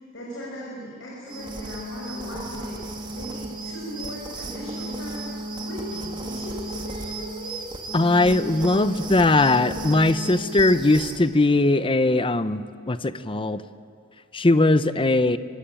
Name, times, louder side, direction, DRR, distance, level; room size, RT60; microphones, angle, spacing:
voice 1, 0.1-2.7 3.1-5.3 5.6-7.6, equal, 65° left, -4 dB, 6.1 m, -38 dB
sound 1, 1.3-11.2, right 2 dB, 25° right, 2.2 m, -34 dB
voice 2, 7.9-13.6 14.3-15.4, left 2 dB, 25° left, 13 dB, 0.8 m, -20 dB
24.5 x 23.5 x 9.0 m, 2.2 s
head